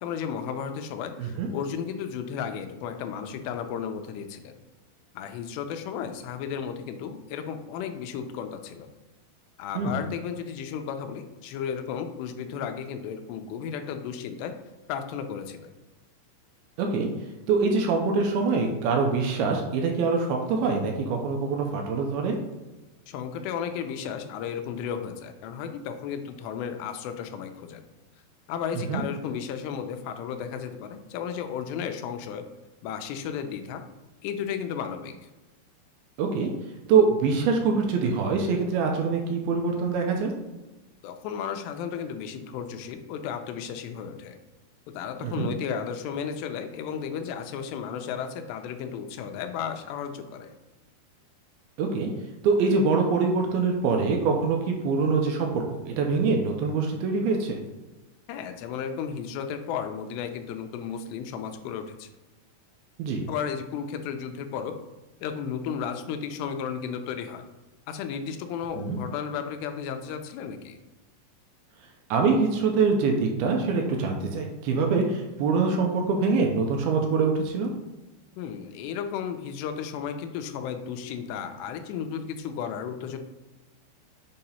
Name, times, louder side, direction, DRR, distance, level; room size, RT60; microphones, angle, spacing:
voice 1, 0.0-4.6 5.1-8.9 9.6-14.5 14.9-15.7 23.1-27.8 28.5-32.4 32.8-33.8 34.2-35.1 41.0-44.4 44.9-50.5 58.3-62.1 63.3-64.7 65.2-67.4 67.9-70.8 78.4-83.2, left 7 dB, 85° left, 7 dB, 2.8 m, -34 dB
voice 2, 1.2-1.5 9.7-10.0 16.8-17.1 17.5-22.4 28.7-29.0 36.2-36.5 36.9-40.3 45.2-45.5 51.8-52.1 52.4-57.6 63.0-63.2 68.8-69.0 72.1-77.7, right 4 dB, 80° right, 2 dB, 2.4 m, -24 dB
7.1 x 2.9 x 5.4 m, 1.1 s
omnidirectional pair, 4.8 m